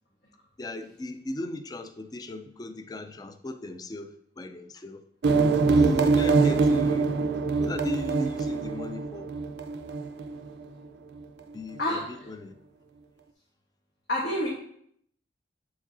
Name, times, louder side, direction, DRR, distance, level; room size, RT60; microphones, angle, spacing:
voice 1, 0.6-5.0 5.7-7.1 7.6-9.3 11.5-12.0 12.3-12.5, left 1 dB, 20° left, 9 dB, 0.3 m, -37 dB
sound 1, 5.2-10.6, right 4 dB, 65° right, 0.4 m, -24 dB
voice 2, 11.8-12.3 14.1-14.5, left 1 dB, 70° left, -5 dB, 1.3 m, -28 dB
7.9 x 4.8 x 2.7 m, 0.68 s
head